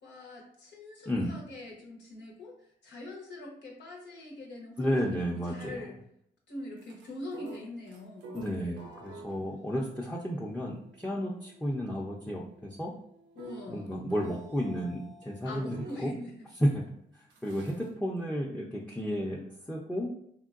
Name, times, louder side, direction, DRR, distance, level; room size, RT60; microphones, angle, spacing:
voice 1, 0.0-2.5 2.8-6.0 6.5-8.4 13.4-14.1 15.4-16.3, left 2 dB, 90° left, -2 dB, 0.8 m, -43 dB
voice 2, 4.8-5.8 8.3-12.9 13.7-16.1 16.6-16.8 17.4-19.4 19.7-20.1, equal, 5° left, -4 dB, 0.5 m, -32 dB
sound 1, 6.8-16.1 17.3-17.9, right 3 dB, 85° right, 0.5 m, -51 dB
3.6 x 2.2 x 2.4 m, 0.72 s
cardioid pair, 60°, 18 cm